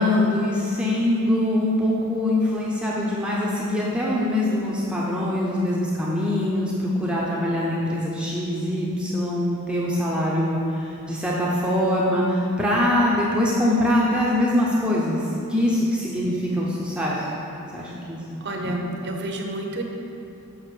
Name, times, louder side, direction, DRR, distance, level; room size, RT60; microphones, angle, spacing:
voice 1, 0.0-17.2 17.7-18.7, left 1 dB, 5° right, -6 dB, 0.7 m, -23 dB
voice 2, 18.4-19.8, right 1 dB, 50° right, 2 dB, 0.8 m, -30 dB
6.7 x 5.8 x 4.6 m, 2.8 s
head